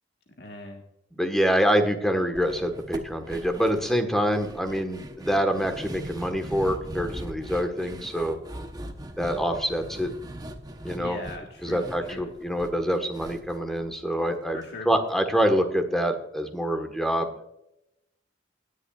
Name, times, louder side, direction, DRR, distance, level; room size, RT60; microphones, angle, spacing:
voice 1, 0.4-0.8 11.0-12.3 14.5-14.9, left 2 dB, 60° left, 1 dB, 1.6 m, -40 dB
voice 2, 1.1-8.4 9.2-10.1 10.8-11.2 11.6-14.6 14.8-17.3, equal, ahead, 5 dB, 1.4 m, -26 dB
sound 1, 2.4-14.6 14.9-15.0 15.4-15.5, right 1 dB, 20° right, 0.9 m, -40 dB
17.5 x 10.5 x 2.4 m, 0.81 s
head